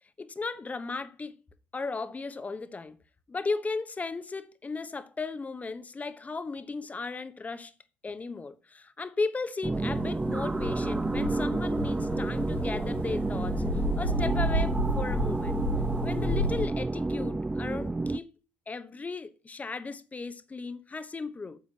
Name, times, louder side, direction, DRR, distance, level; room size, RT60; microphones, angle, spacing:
voice 1, 0.2-1.4 1.7-3.0 3.3-7.7 8.0-15.6 16.0-18.4 18.7-21.6, left 4 dB, 25° left, 1.0 m, -36 dB
sound 1, 9.6-18.2, right 2 dB, 10° right, 0.3 m, -30 dB
sound 2, 9.7-16.7, equal, 85° left, 1.5 m, -32 dB
12.5 x 7.3 x 2.9 m
hypercardioid pair, 60°, 6 cm